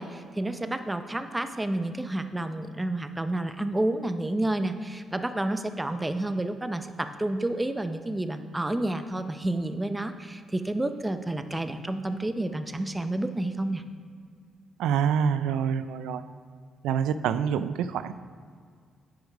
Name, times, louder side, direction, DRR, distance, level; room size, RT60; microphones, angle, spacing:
voice 1, 0.0-13.8, right 1 dB, 10° right, 9 dB, 0.6 m, -30 dB
voice 2, 14.8-16.2 16.8-18.1, right 7 dB, 85° right, 12 dB, 0.3 m, -26 dB
9.3 x 5.2 x 4.9 m, 2.1 s
cardioid pair, 90°, 0 cm